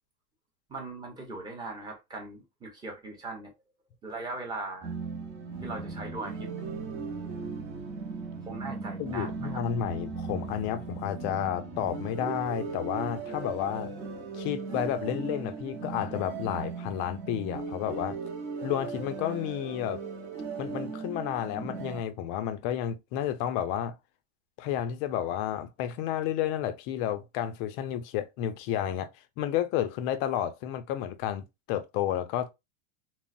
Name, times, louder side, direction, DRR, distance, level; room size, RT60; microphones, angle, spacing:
voice 1, 0.7-3.5 4.0-4.9 5.6-6.5 8.5-9.6, right 3 dB, 10° right, 0.8 m, -39 dB
sound 1, 4.8-22.0, right 4 dB, 35° right, 1.0 m, -37 dB
voice 2, 9.0-13.9 14.3-18.2 18.6-20.0 20.6-23.9 24.6-29.1 29.4-32.5, left 10 dB, 40° left, 0.4 m, -31 dB
3.8 x 2.0 x 2.5 m
supercardioid pair, 155°, 33 cm